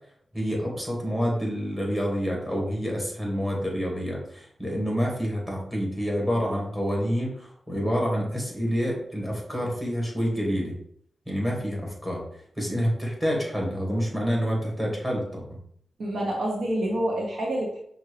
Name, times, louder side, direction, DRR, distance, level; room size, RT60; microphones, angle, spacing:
voice 1, 0.3-10.8 11.3-12.2 12.6-15.6, equal, 10° right, -2 dB, 1.9 m, -28 dB
voice 2, 16.0-17.8, right 1 dB, 85° right, -2 dB, 0.9 m, -27 dB
5.7 x 2.6 x 3.3 m, 0.66 s
cardioid pair, 75°, 0 cm